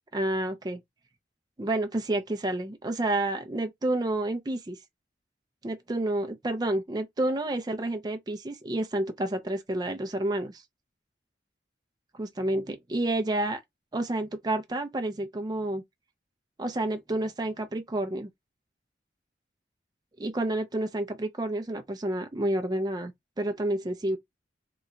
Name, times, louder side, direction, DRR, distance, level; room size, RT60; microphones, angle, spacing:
voice 1, 0.1-0.8 1.6-4.8 5.6-10.6 12.2-13.6 13.9-15.8 16.6-18.3 20.2-23.1 23.4-24.2, right 1 dB, 20° right, 0.4 m, -29 dB
2.9 x 2.1 x 3.7 m
head